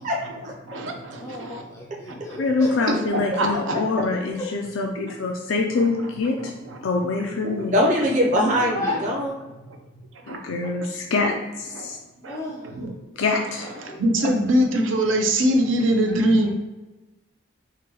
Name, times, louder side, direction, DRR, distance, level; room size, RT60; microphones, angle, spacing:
voice 1, 0.0-0.5 7.7-9.3, equal, 40° right, -3 dB, 0.7 m, -22 dB
voice 2, 0.7-1.6 2.1-2.4 3.1-4.0 5.0-5.1 5.8-5.9 6.4-6.8 7.4-7.7 8.9-9.1 10.3-10.4 11.7-11.9 12.2-12.9 13.8-16.5, right 1 dB, 80° right, 3 dB, 0.6 m, -24 dB
voice 3, 1.2-2.8 8.7-9.0 12.3-12.8 13.9-14.3 16.3-16.5, left 2 dB, 15° left, -3 dB, 0.3 m, -33 dB
voice 4, 2.4-6.5 6.8-7.7 10.3-12.0 13.2-13.7, left 3 dB, 90° left, 1 dB, 0.4 m, -25 dB
4.7 x 2.2 x 3.0 m, 1.1 s
head